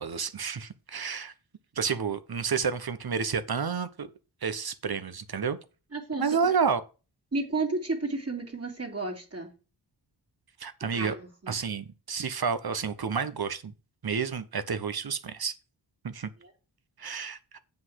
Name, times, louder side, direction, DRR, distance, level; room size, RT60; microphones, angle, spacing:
voice 1, 0.0-1.3 1.8-4.1 4.4-5.6 6.2-6.8 10.6-11.1 11.5-13.7 14.0-15.5 16.0-16.3 17.0-17.6, right 6 dB, 60° right, 1.1 m, -30 dB
voice 2, 5.9-6.6 7.3-9.5 10.9-11.6 16.4-16.5, right 3 dB, 35° right, 2.6 m, -32 dB
7.9 x 5.5 x 6.3 m
wide cardioid pair, 95°, 42 cm